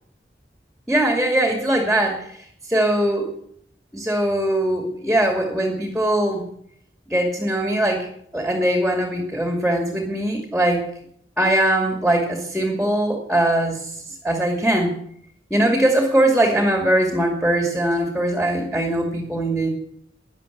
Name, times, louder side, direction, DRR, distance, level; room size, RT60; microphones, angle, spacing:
voice 1, 0.9-2.3 2.7-3.3 3.9-6.5 7.1-8.1 8.3-10.9 11.4-13.9 14.2-14.9 15.5-19.7, right 1 dB, ahead, 2 dB, 2.3 m, -21 dB
14.5 x 10.5 x 8.1 m, 0.67 s
head